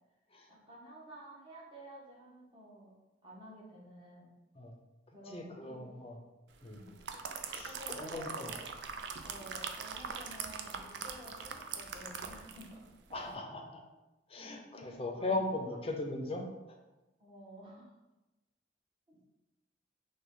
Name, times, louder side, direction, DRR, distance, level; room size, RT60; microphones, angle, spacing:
voice 1, 0.5-2.9 3.2-4.3 5.1-5.9 6.7-7.0 7.6-8.6 9.2-12.8 14.7-15.5 17.2-17.9 19.1-19.2, equal, 30° right, -5 dB, 1.2 m, -51 dB
voice 2, 5.3-6.2 6.6-6.8 7.5-8.5 13.1-13.8 14.3-16.4, left 2 dB, 35° left, 2 dB, 0.6 m, -38 dB
sound 1, 6.7-12.8 13.1-13.3, right 6 dB, 80° right, 0.4 m, -42 dB
5.9 x 2.3 x 3.8 m, 1.0 s
head